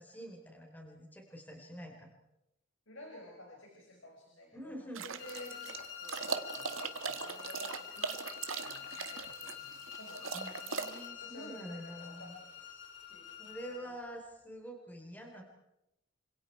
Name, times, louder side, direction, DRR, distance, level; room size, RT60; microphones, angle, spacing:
voice 1, 0.0-2.1 4.5-5.0 10.3-12.4 12.7-12.8 13.4-15.4, equal, 10° left, 2 dB, 4.3 m, -47 dB
voice 2, 2.9-10.4 11.2-12.6 13.1-13.9, left 1 dB, 75° left, 0 dB, 5.3 m, -53 dB
sound 1, 5.0-11.1, right 5 dB, 85° right, 1.8 m, -40 dB
sound 2, 5.2-13.9, left 9 dB, 55° left, 5.6 m, -47 dB
30.0 x 26.5 x 4.7 m, 0.86 s
head